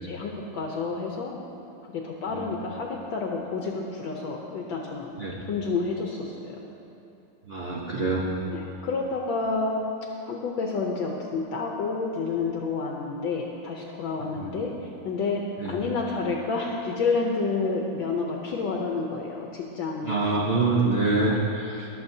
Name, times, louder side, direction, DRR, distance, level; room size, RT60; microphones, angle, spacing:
voice 1, 0.0-1.3 1.9-5.1 5.5-6.5 8.4-9.8 10.3-14.7 15.0-20.3, left 4 dB, 70° left, 0 dB, 1.4 m, -29 dB
voice 2, 7.5-8.3 14.4-14.5 15.6-15.8 20.0-21.9, right 3 dB, 85° right, -3 dB, 0.5 m, -25 dB
19.0 x 7.1 x 2.7 m, 2.9 s
omnidirectional pair, 2.3 m